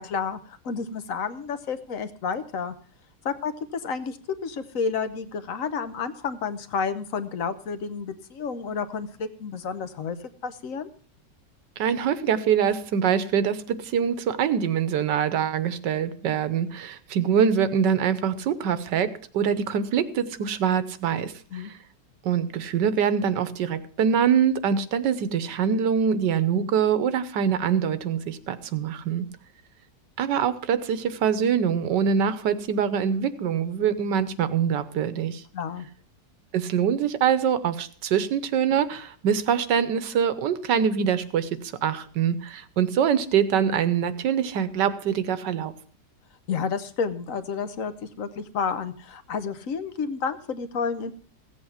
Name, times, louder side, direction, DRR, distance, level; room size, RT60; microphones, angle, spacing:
voice 1, 0.0-2.7 3.2-4.2 4.4-10.2 10.4-10.9 21.5-21.7 35.5-35.9 46.5-51.1, left 5 dB, 55° left, 12 dB, 1.2 m, -30 dB
voice 2, 11.8-19.1 19.3-21.8 22.2-29.3 30.2-35.4 36.5-45.7, right 7 dB, 85° right, 13 dB, 1.6 m, -24 dB
15.5 x 8.0 x 5.7 m, 0.44 s
omnidirectional pair, 1.8 m